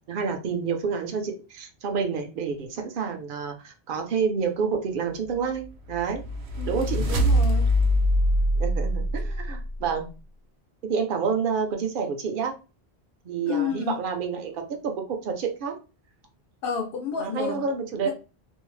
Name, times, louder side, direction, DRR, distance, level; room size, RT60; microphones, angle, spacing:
voice 1, 0.1-6.2 6.6-7.0 8.6-10.1 10.8-12.5 13.2-15.8 17.2-18.1, right 6 dB, 60° right, 4 dB, 0.7 m, -28 dB
sound 1, 5.6-9.9, equal, 85° right, 0.9 m, -23 dB
voice 2, 6.6-7.7 13.5-14.0 16.6-17.6 18.0-18.1, left 7 dB, 65° left, 0 dB, 0.7 m, -30 dB
2.6 x 2.0 x 3.1 m, 0.32 s
omnidirectional pair, 1.1 m